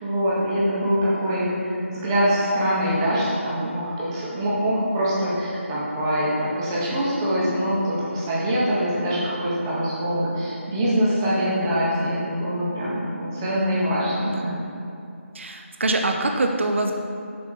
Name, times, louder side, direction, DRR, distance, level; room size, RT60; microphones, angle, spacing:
voice 1, 0.0-14.6, equal, 15° right, -8 dB, 1.4 m, -24 dB
voice 2, 14.2-14.7 15.3-16.9, right 2 dB, 60° right, 3 dB, 0.7 m, -24 dB
7.0 x 6.5 x 3.8 m, 2.5 s
figure-of-eight pair, 165°, 7 cm